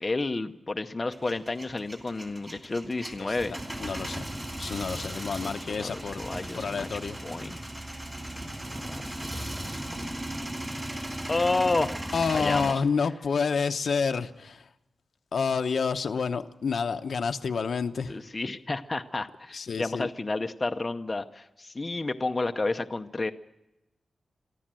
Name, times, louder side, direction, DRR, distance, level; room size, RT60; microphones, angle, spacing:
voice 1, 0.0-3.5 4.9-6.9 7.2-7.6 8.4-8.5 8.8-8.9 9.6-10.0 11.3-12.0 12.3-12.8 18.1-23.3, left 3 dB, 25° left, 6 dB, 0.7 m, -31 dB
Male speech man speaking / Vehicle / Engine starting, 1.1-12.7, right 1 dB, 15° right, 2.8 m, -37 dB
voice 2, 3.8-4.2 4.6-6.3 6.6-7.2 12.1-14.7 15.3-18.2 19.5-20.1, left 5 dB, 65° left, 8 dB, 0.9 m, -29 dB
24.0 x 14.0 x 7.6 m, 0.94 s
wide cardioid pair, 150°, 0 cm